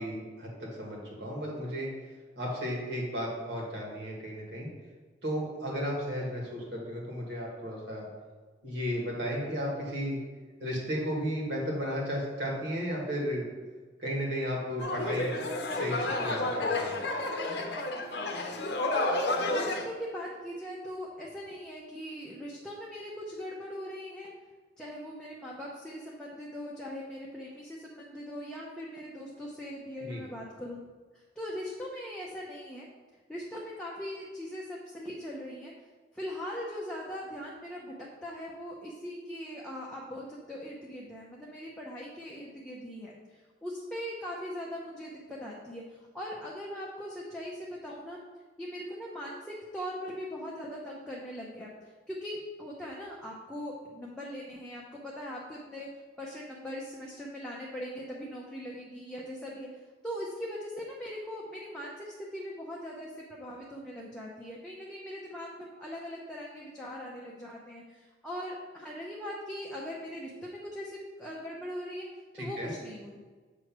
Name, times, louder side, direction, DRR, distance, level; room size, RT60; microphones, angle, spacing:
voice 1, 0.0-1.9 2.4-4.7 5.2-8.1 8.6-10.2 10.6-13.4 14.0-15.4 15.7-17.0 30.0-30.2 72.3-72.7, equal, 65° right, -3 dB, 1.9 m, -34 dB
sound 1, 14.8-19.9, left 2 dB, 60° left, 0.8 m, -31 dB
voice 2, 19.1-24.3 24.8-30.8 31.1-32.9 33.3-35.7 36.1-37.9 38.2-48.2 48.6-55.9 56.2-59.7 60.0-72.1 72.4-73.2, equal, 5° left, -5 dB, 0.7 m, -40 dB
7.5 x 3.2 x 6.0 m, 1.4 s
head